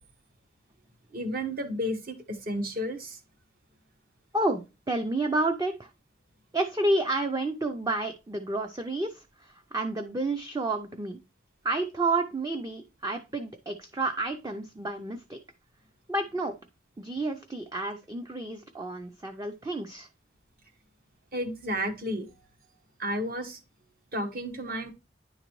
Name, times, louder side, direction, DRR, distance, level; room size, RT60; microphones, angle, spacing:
voice 1, 1.1-3.2 21.3-22.3 23.0-23.6 24.1-24.9, equal, 50° right, 6 dB, 1.1 m, -32 dB
voice 2, 4.3-5.9 6.5-11.2 11.6-15.4 16.1-16.5 17.0-20.1, right 2 dB, 20° right, 5 dB, 0.5 m, -30 dB
9.9 x 3.9 x 3.1 m, 0.27 s
head